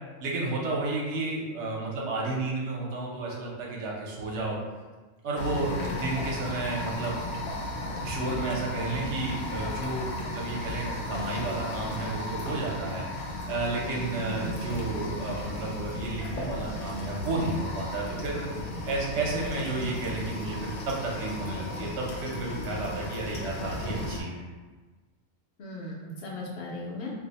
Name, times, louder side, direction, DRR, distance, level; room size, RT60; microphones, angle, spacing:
voice 1, 0.2-4.6 5.2-7.2 8.0-18.5 18.9-24.4, right 2 dB, 70° right, -2 dB, 1.0 m, -32 dB
sound 1, 5.3-24.2, left 1 dB, 85° left, 0.9 m, -35 dB
voice 2, 5.7-6.1 14.2-14.6 25.6-27.1, left 2 dB, 60° left, -3 dB, 0.8 m, -37 dB
2.6 x 2.0 x 4.0 m, 1.3 s
omnidirectional pair, 1.3 m